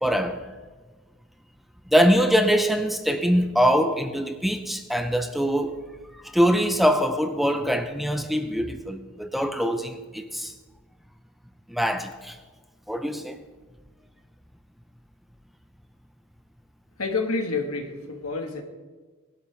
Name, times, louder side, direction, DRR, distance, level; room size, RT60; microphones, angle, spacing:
voice 1, 0.0-0.4 1.9-5.8 6.2-10.5 11.7-12.4 12.9-13.4, equal, ahead, 0.5 m, -23 dB
voice 2, 17.0-18.6, left 3 dB, 85° left, 1.6 m, -28 dB
19.5 x 11.5 x 3.4 m
head